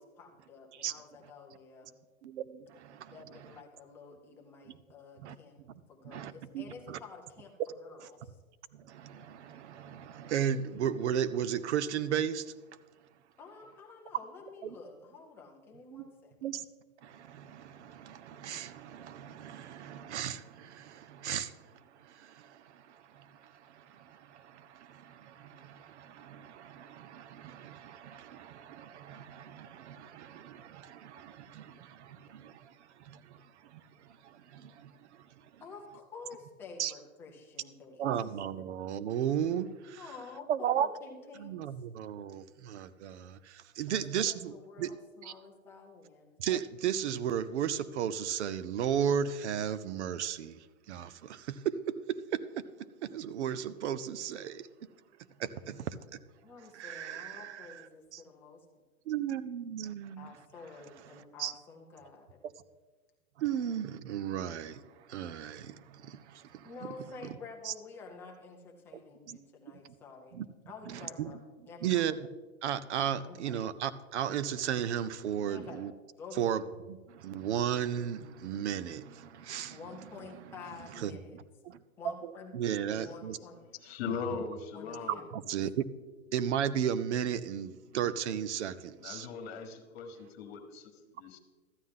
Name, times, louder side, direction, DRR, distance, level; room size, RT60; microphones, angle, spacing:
voice 1, 0.0-2.0 3.1-5.6 5.9-8.4 13.4-16.3 35.6-38.3 40.0-41.5 43.9-46.4 56.4-58.6 60.2-62.4 66.6-70.4 70.7-71.4 71.7-72.2 73.3-73.6 75.5-75.8 76.2-76.6 79.7-81.4 82.0-82.5 82.9-83.6 84.7-85.2, left 4 dB, 5° left, -1 dB, 0.4 m, -50 dB
voice 2, 2.2-3.2 5.2-5.3 6.0-7.0 8.7-12.5 14.6-14.7 15.9-16.0 16.4-16.6 17.0-21.5 22.0-32.7 33.0-33.4 33.6-33.8 34.2-35.2 36.8-36.9 38.0-40.0 40.5-40.9 41.4-44.5 44.8-44.9 45.2-45.3 46.4-50.6 50.9-52.6 53.0-54.7 55.4-56.2 56.7-57.8 58.1-58.2 59.1-60.3 61.4-61.5 63.4-64.8 65.1-66.7 67.7-67.8 69.3-69.4 70.3-70.5 70.9-71.3 71.8-72.2 72.6-75.9 76.4-76.6 76.9-79.8 81.0-81.1 81.7-81.8 82.5-83.4 85.3-85.8 86.3-89.3, right 9 dB, 55° right, 16 dB, 0.6 m, -35 dB
voice 3, 83.8-85.3 89.0-91.4, left 6 dB, 45° left, 7 dB, 1.5 m, -40 dB
13.0 x 9.3 x 3.7 m, 1.3 s
hypercardioid pair, 145°, 42 cm